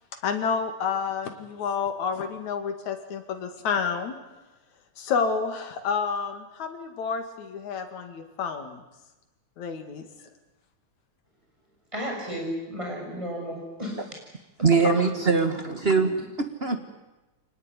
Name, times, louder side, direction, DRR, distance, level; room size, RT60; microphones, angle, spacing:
voice 1, 0.2-4.1 5.0-8.8 9.6-10.1 14.8-14.9, left 6 dB, 70° left, 6 dB, 3.5 m, -29 dB
voice 2, 11.9-14.0, equal, 10° right, -1 dB, 7.2 m, -33 dB
voice 3, 14.6-16.8, right 4 dB, 40° right, 7 dB, 0.9 m, -22 dB
25.0 x 19.5 x 9.8 m, 1.1 s
omnidirectional pair, 3.5 m